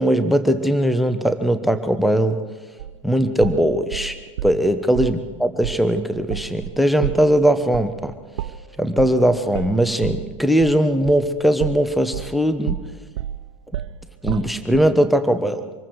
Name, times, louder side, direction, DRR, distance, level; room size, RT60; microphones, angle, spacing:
voice 1, 0.0-2.4 3.0-4.2 4.4-8.1 8.8-12.8 14.2-15.6, equal, ahead, 10 dB, 1.1 m, -19 dB
sound 1, 2.8-4.6 5.0-5.2 5.6-5.8 6.1-12.4 12.7-14.9, right 11 dB, 65° right, 0.7 m, -30 dB
26.0 x 21.5 x 4.8 m, 1.4 s
hypercardioid pair, 95°, 17 cm